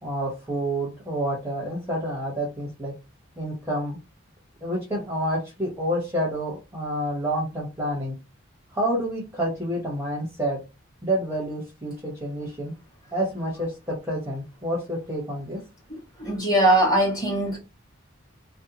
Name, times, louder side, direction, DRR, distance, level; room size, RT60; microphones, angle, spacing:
voice 1, 0.0-2.9 3.4-4.0 4.6-8.1 8.7-10.6 11.0-12.7 13.1-15.6, right 1 dB, 10° right, 0.8 m, -28 dB
voice 2, 16.2-17.6, right 1 dB, 20° left, 1.3 m, -20 dB
2.7 x 2.1 x 2.7 m
head